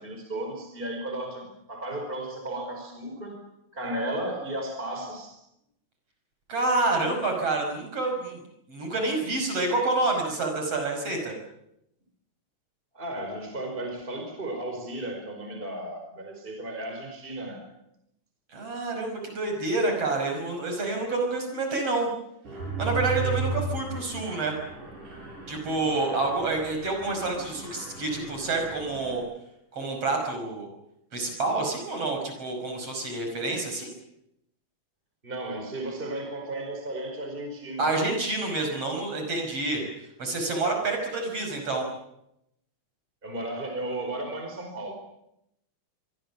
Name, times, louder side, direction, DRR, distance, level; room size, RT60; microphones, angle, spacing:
voice 1, 0.0-3.4 3.7-5.4 12.9-17.6 35.2-37.9 43.2-44.9, right 1 dB, 15° right, 4 dB, 4.7 m, -34 dB
voice 2, 6.5-8.4 8.7-11.4 18.5-22.1 22.8-24.5 25.5-29.2 29.7-30.7 31.1-33.9 37.8-39.8 40.2-41.9, right 2 dB, 50° right, 3 dB, 6.5 m, -28 dB
Mechanisms, 22.4-29.2, right 3 dB, 80° right, 8.7 m, -35 dB
25.0 x 24.5 x 7.3 m, 0.82 s
omnidirectional pair, 3.5 m